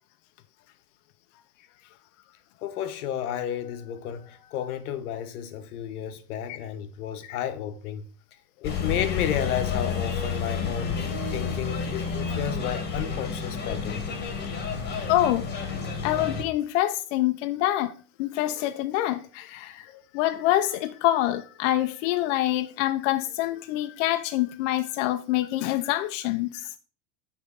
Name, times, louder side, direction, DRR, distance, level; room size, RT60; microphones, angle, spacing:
voice 1, 2.6-8.1 8.6-11.0 11.3-14.0, left 9 dB, 85° left, 1.0 m, -32 dB
sound 1, 8.6-16.4, left 5 dB, 25° left, 1.2 m, -30 dB
voice 2, 15.1-15.5 16.0-26.8, left 14 dB, 60° left, 0.5 m, -26 dB
5.9 x 3.6 x 4.8 m
supercardioid pair, 135°, 43 cm